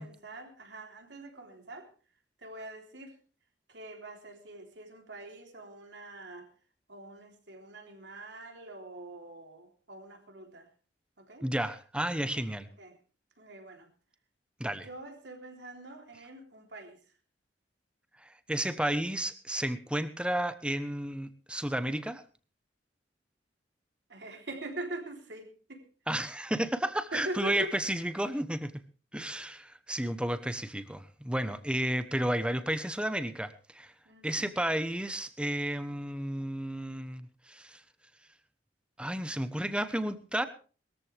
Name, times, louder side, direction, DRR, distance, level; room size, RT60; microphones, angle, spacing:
voice 1, 0.0-1.9 2.4-3.2 3.7-6.5 6.9-10.7 11.2-11.5 12.7-13.0 13.4-13.9 14.7-17.0 24.1-25.8 27.1-27.8 34.1-34.4, right 1 dB, 75° right, 3 dB, 3.6 m, -43 dB
voice 2, 11.4-12.7 14.6-14.9 18.2-22.2 26.1-28.7 29.1-33.9 34.2-37.8 39.0-40.5, right 1 dB, 5° right, 11 dB, 1.0 m, -32 dB
21.0 x 14.0 x 3.5 m, 0.37 s
head